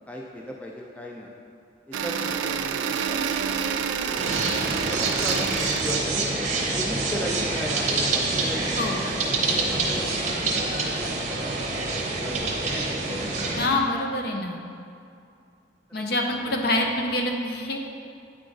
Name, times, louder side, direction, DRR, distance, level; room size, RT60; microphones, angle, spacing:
voice 1, 0.1-1.3 1.9-3.5 3.8-4.3 4.9-6.3 6.8-11.8 12.0-12.8, equal, 5° left, -1 dB, 0.3 m, -37 dB
sound 1, 1.9-6.0, right 7 dB, 85° right, 0.3 m, -28 dB
sound 2, 4.2-13.7, right 3 dB, 40° right, 0.7 m, -26 dB
voice 2, 13.6-14.6 15.9-17.8, left 1 dB, 55° left, 2 dB, 0.6 m, -26 dB
8.9 x 3.7 x 3.8 m, 2.4 s
head